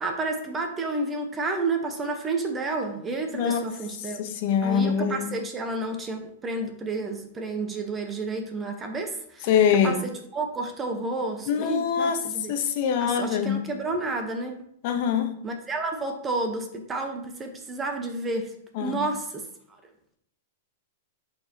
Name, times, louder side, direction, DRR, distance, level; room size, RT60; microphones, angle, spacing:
voice 1, 0.0-4.2 4.6-9.5 9.8-12.5 13.0-14.6 15.4-18.5 18.8-19.5, right 2 dB, 20° right, 1.1 m, -30 dB
voice 2, 3.3-3.7 4.2-5.3 9.5-10.0 11.5-12.2 12.5-13.6 14.8-15.3 18.8-19.0, left 7 dB, 55° left, 1.0 m, -24 dB
8.1 x 4.4 x 2.9 m
hypercardioid pair, 120°, 0 cm